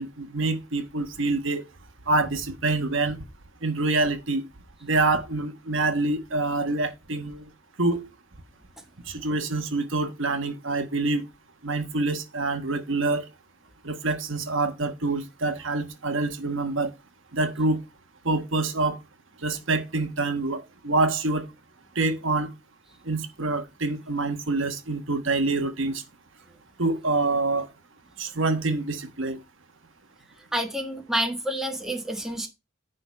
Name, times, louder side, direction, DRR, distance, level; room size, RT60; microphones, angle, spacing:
voice 1, 0.0-1.6 2.1-3.2 3.6-4.5 4.8-7.5 7.8-8.1 9.1-11.2 11.6-13.3 13.8-16.9 17.3-17.8 18.2-19.0 19.4-21.5 21.9-22.5 23.0-26.0 26.8-27.7 28.2-29.4, right 3 dB, 65° right, 1.3 m, -26 dB
voice 2, 30.5-32.5, equal, ahead, 1.5 m, -28 dB
10.0 x 4.0 x 5.7 m
head